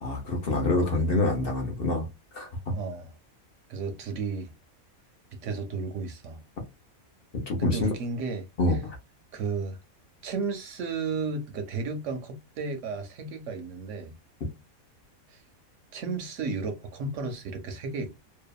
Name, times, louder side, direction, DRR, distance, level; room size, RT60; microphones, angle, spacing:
voice 1, 0.0-2.1 2.3-2.7 6.6-6.7 7.5-7.9 8.6-9.0, left 2 dB, 50° left, 0.8 m, -26 dB
voice 2, 2.7-3.1 3.7-4.5 5.3-6.4 7.6-8.8 9.3-9.8 10.2-14.1 15.3-15.4 15.9-18.2, right 4 dB, 70° right, 0.8 m, -33 dB
2.7 x 2.2 x 2.2 m
omnidirectional pair, 1.5 m